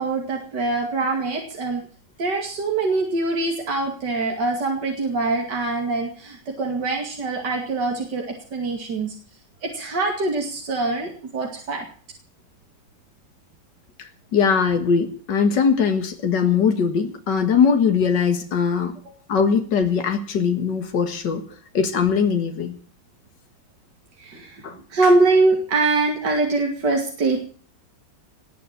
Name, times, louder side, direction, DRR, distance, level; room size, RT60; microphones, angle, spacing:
voice 1, 0.0-1.8 2.2-8.2 8.5-9.1 9.6-11.8 24.2-24.6 24.9-27.4, right 3 dB, 75° right, 3.0 m, -23 dB
voice 2, 14.3-18.9 19.3-21.4 21.7-22.8 24.6-24.8, left 6 dB, 80° left, 2.3 m, -20 dB
20.5 x 7.0 x 9.0 m
omnidirectional pair, 1.9 m